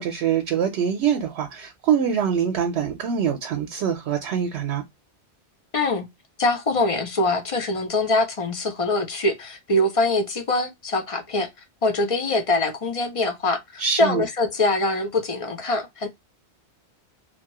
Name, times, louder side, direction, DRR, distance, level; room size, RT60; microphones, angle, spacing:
voice 1, 0.0-4.8 13.8-14.2, right 8 dB, 75° right, 0.8 m, -24 dB
voice 2, 5.7-6.1 6.4-11.5 11.8-16.1, left 2 dB, 45° left, 0.4 m, -23 dB
2.8 x 2.2 x 2.9 m
omnidirectional pair, 1.2 m